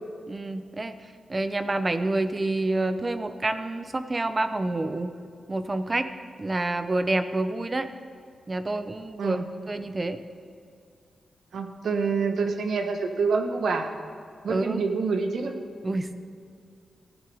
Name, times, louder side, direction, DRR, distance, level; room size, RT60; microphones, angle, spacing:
voice 1, 0.3-0.9 1.3-5.1 5.5-6.1 6.4-7.9 8.5-9.4 9.7-10.2 14.5-14.8 15.8-16.2, right 2 dB, 25° right, 10 dB, 0.6 m, -28 dB
voice 2, 11.5-13.9 14.4-15.5, right 4 dB, 80° right, 5 dB, 1.1 m, -26 dB
16.0 x 11.0 x 3.5 m, 2.3 s
wide cardioid pair, 145°, 0 cm